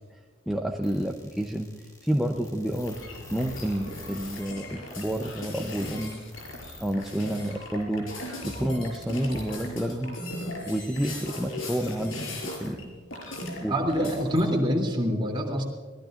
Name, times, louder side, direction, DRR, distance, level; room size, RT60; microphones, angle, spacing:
voice 1, 0.5-1.7 2.0-3.0 3.3-6.2 6.8-8.1 8.4-10.2 10.6-12.8 13.6-14.1, equal, ahead, 1 dB, 0.7 m, -29 dB
sound 1, 0.8-6.9 7.2-7.3 7.8-7.9, left 3 dB, 20° left, 2.6 m, -47 dB
sound 2, 2.8-12.8 13.1-14.5, left 1 dB, 70° left, 5.9 m, -38 dB
voice 2, 13.7-15.6, equal, 25° right, 1 dB, 3.1 m, -25 dB
24.0 x 18.5 x 2.6 m, 1.5 s
head